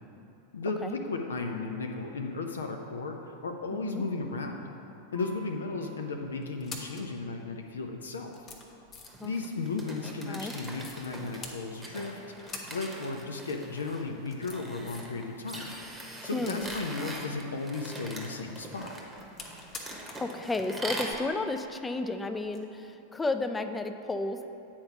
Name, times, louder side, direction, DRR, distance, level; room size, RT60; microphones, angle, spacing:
voice 1, 0.5-4.7 5.1-8.3 9.2-15.7 16.2-18.9, left 3 dB, 70° left, 3 dB, 0.5 m, -35 dB
sound 1, 5.1-5.7 6.4-7.1 7.8-7.9 8.3-9.3 10.6-11.1 11.4-12.1 12.4-12.9 13.2-13.3 14.1-15.2 15.5-17.0 18.4-20.3 20.6-20.7 22.5-22.6, left 3 dB, 25° left, 0.9 m, -46 dB
sound 2, 9.1-21.1, right 1 dB, 10° right, 1.1 m, -42 dB
voice 2, 16.3-16.7 20.2-24.5, left 2 dB, 10° left, 8 dB, 0.4 m, -32 dB
8.8 x 4.4 x 5.8 m, 2.8 s
figure-of-eight pair, 90°, 0 cm